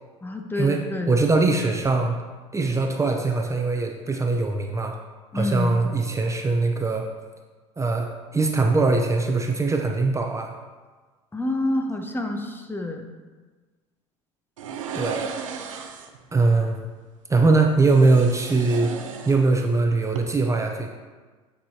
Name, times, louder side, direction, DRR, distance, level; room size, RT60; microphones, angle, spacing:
voice 1, 0.2-1.2 5.3-5.8 6.0-6.1 11.3-13.1, left 2 dB, 15° left, 4 dB, 0.8 m, -28 dB
voice 2, 1.1-2.2 2.5-4.9 5.3-7.1 7.8-10.5 14.9-15.3 16.3-16.8 17.3-18.9 19.2-20.9, right 3 dB, 20° right, 2 dB, 0.6 m, -21 dB
sound 1, 14.6-16.2 17.8-19.8 20.0-20.2, right 7 dB, 90° right, 0.6 m, -35 dB
8.4 x 4.9 x 2.8 m, 1.4 s
hypercardioid pair, 75°, 16 cm